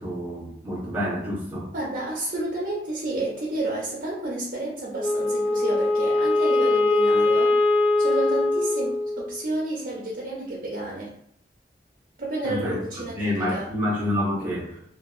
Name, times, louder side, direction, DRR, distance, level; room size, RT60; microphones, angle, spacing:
voice 1, 0.0-1.7 12.4-14.8, left 1 dB, 10° right, -6 dB, 0.9 m, -28 dB
voice 2, 1.7-7.5 8.0-11.1 12.2-13.7, right 1 dB, 50° right, -4 dB, 0.6 m, -30 dB
Wind instrument woodwind instrument, 5.0-9.4, left 2 dB, 30° left, 0.4 m, -22 dB
2.7 x 2.5 x 2.5 m, 0.67 s
head